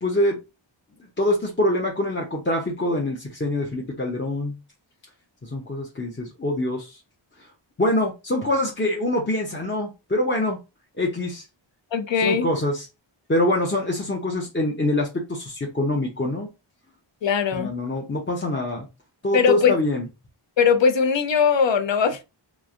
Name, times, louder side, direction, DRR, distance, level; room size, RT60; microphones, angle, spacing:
voice 1, 0.0-0.4 1.2-4.6 5.4-7.0 7.8-10.6 11.0-11.4 12.2-12.9 13.3-16.5 17.5-18.9 19.2-20.1, left 1 dB, 25° left, 0.6 m, -24 dB
voice 2, 11.9-12.5 17.2-17.7 19.3-19.7 20.6-22.2, left 6 dB, 65° left, 0.6 m, -20 dB
3.1 x 2.4 x 2.4 m
wide cardioid pair, 45°, 49 cm